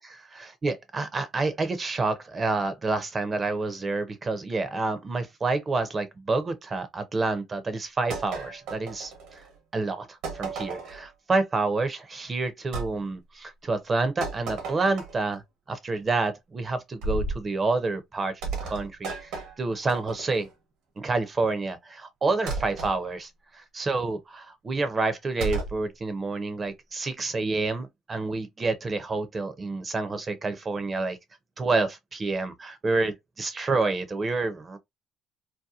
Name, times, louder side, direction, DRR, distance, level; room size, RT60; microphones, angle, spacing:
voice 1, 0.6-9.4 9.7-15.4 15.7-19.3 19.6-20.5 21.0-31.2 31.6-34.8, right 3 dB, 30° right, 0.6 m, -28 dB
sound 1, 8.1-9.5 10.2-11.1 12.7-12.9 14.2-15.3 17.0-17.4 18.4-20.5 22.5-23.0 25.4-25.8, right 3 dB, 85° right, 1.0 m, -34 dB
2.7 x 2.1 x 2.4 m
cardioid pair, 90°, 0 cm